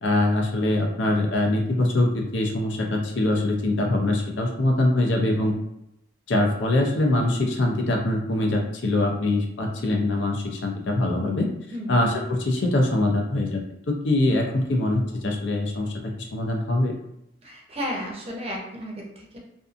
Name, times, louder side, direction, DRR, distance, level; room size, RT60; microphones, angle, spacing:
voice 1, 0.0-5.6 6.3-11.5 11.9-13.6 13.9-16.9, left 1 dB, 70° left, 1 dB, 0.5 m, -23 dB
voice 2, 11.7-12.1 17.4-19.4, equal, 35° right, -1 dB, 0.6 m, -33 dB
2.6 x 2.4 x 2.5 m, 0.84 s
head